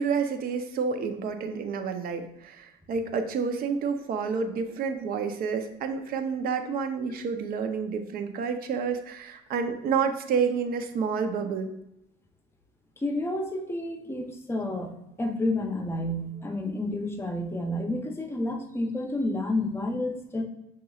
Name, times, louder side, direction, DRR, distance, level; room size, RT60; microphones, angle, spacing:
voice 1, 0.0-11.7, right 5 dB, 60° right, 7 dB, 0.6 m, -29 dB
voice 2, 13.0-20.4, left 1 dB, 15° left, 3 dB, 0.6 m, -30 dB
6.0 x 3.0 x 2.4 m, 0.82 s
cardioid pair, 110°, 17 cm